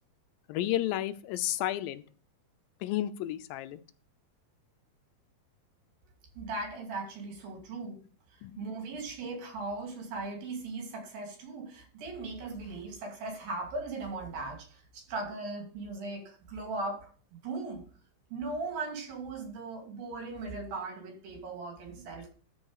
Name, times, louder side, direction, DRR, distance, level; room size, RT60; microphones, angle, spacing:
voice 1, 0.5-2.0 2.8-3.8 8.4-8.5, left 13 dB, 90° left, 2.4 m, -31 dB
voice 2, 6.4-8.0 8.3-17.8 18.3-22.3, right 3 dB, 85° right, 4.3 m, -38 dB
12.5 x 4.6 x 4.8 m
omnidirectional pair, 4.0 m